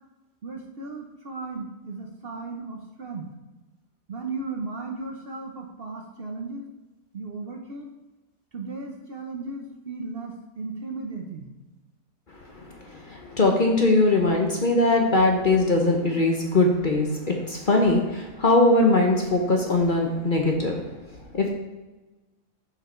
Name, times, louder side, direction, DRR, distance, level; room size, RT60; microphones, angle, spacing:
voice 1, 0.4-3.3 4.1-6.7 7.1-7.9 8.5-11.5, right 3 dB, 50° right, 2 dB, 0.8 m, -35 dB
voice 2, 12.5-20.8 21.3-21.5, left 2 dB, 40° left, 1 dB, 0.9 m, -21 dB
6.8 x 5.6 x 4.3 m, 1.1 s
omnidirectional pair, 1.5 m